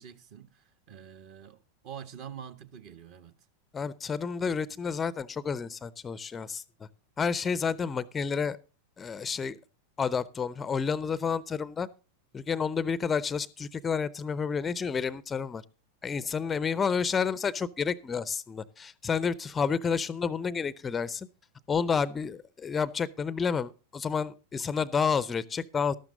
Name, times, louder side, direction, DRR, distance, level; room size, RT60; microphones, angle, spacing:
voice 1, 0.0-1.6 1.8-3.3, right 8 dB, 45° right, 1.3 m, -45 dB
voice 2, 3.7-6.6 7.2-8.6 9.0-9.6 10.0-11.9 12.3-15.6 16.0-21.3 21.7-26.0, left 6 dB, 20° left, 0.5 m, -30 dB
13.0 x 12.0 x 3.8 m
figure-of-eight pair, 90°, 0 cm